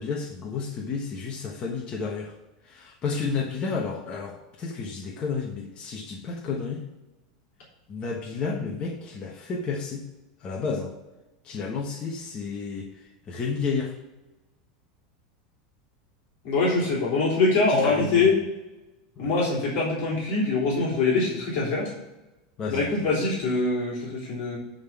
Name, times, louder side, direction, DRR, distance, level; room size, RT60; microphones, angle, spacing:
voice 1, 0.0-2.3 2.6-6.8 7.9-10.0 10.4-10.9 11.4-13.9 17.7-18.3 19.2-19.3 22.6-23.0, left 5 dB, 30° left, 0 dB, 1.2 m, -31 dB
voice 2, 16.4-18.3 19.2-21.9 22.7-24.6, left 3 dB, 50° left, -4 dB, 3.2 m, -24 dB
10.5 x 3.8 x 7.3 m, 1.0 s
supercardioid pair, 140°, 4 cm